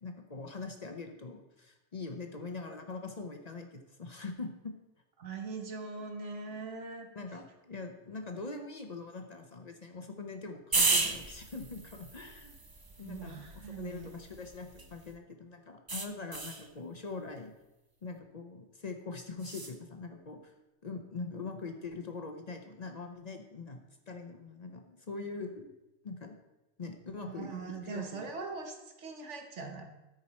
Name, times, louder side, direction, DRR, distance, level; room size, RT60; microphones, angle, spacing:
voice 1, 0.0-4.7 7.1-12.6 13.0-13.4 13.8-17.5 18.0-20.5 20.8-23.8 24.1-25.7 26.0-26.3 26.8-28.2, left 3 dB, 40° left, 4 dB, 0.8 m, -43 dB
voice 2, 5.2-7.1 13.0-14.1 27.2-29.8, right 4 dB, 85° right, 4 dB, 1.5 m, -41 dB
sound 1, 10.7-15.1 15.9-16.7 19.4-19.8, right 3 dB, 25° right, 0.5 m, -34 dB
13.0 x 5.0 x 4.2 m, 1.0 s
omnidirectional pair, 1.2 m